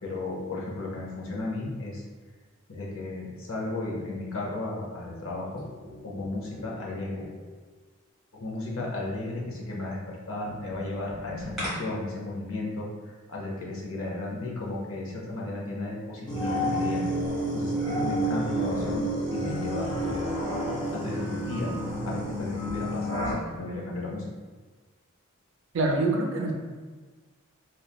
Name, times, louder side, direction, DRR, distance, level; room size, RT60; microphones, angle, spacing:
voice 1, 0.0-2.0 2.7-5.6 6.0-7.3 8.3-17.0 17.5-19.1 19.3-20.4 20.9-24.3, left 2 dB, 70° left, -3 dB, 0.6 m, -34 dB
sound 1, 5.3-7.7 10.5-11.7, left 1 dB, ahead, 1.0 m, -41 dB
sound 2, 16.3-23.3, right 1 dB, 20° left, 0.6 m, -29 dB
voice 2, 25.7-26.5, right 2 dB, 60° right, 2 dB, 0.4 m, -25 dB
3.0 x 2.3 x 2.2 m, 1.4 s
head